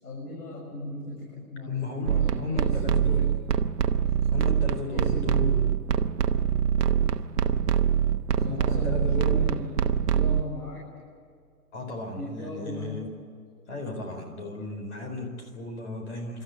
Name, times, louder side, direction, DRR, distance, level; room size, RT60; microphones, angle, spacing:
voice 1, 0.0-3.3 4.8-5.4 8.4-9.8 10.1-10.9 12.1-13.0, left 1 dB, 75° left, -3 dB, 6.9 m, -37 dB
voice 2, 1.7-3.3 4.3-5.8 8.5-9.4 11.7-13.1 13.7-16.4, left 3 dB, 45° left, 3 dB, 4.3 m, -35 dB
sound 1, 2.1-10.4, right 8 dB, 90° right, 1.0 m, -24 dB
28.0 x 13.5 x 9.4 m, 2.3 s
hypercardioid pair, 170°, 46 cm